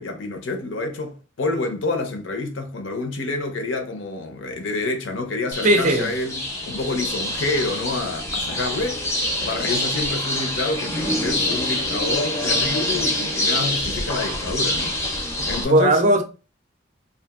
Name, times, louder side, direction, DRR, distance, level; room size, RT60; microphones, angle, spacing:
voice 1, 0.0-9.0 9.4-16.0, left 3 dB, 70° left, 0.6 m, -28 dB
sound 1, 5.5-15.6, left 1 dB, 15° left, 0.6 m, -25 dB
voice 2, 5.6-6.1 15.7-16.2, right 1 dB, 40° right, 0.4 m, -17 dB
2.7 x 2.4 x 2.3 m
head